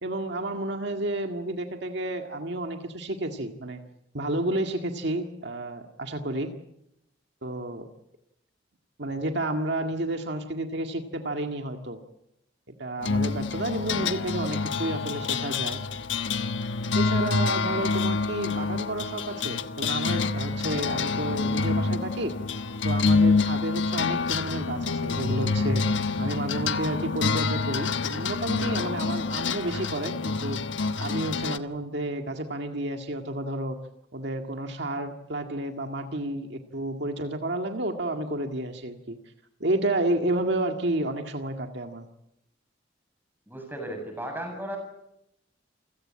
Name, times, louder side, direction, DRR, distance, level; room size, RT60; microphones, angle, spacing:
voice 1, 0.0-3.8 4.1-6.5 7.4-7.9 9.0-12.0 12.8-15.8 16.9-22.3 22.8-25.8 26.2-30.6 31.0-33.8 34.1-39.2 39.6-42.1, right 1 dB, 60° right, 5 dB, 1.9 m, -31 dB
sound 1, 13.0-31.6, left 4 dB, 75° left, 1.2 m, -27 dB
voice 2, 43.5-44.8, right 1 dB, 10° right, 4 dB, 7.7 m, -35 dB
28.5 x 16.5 x 8.7 m, 0.81 s
head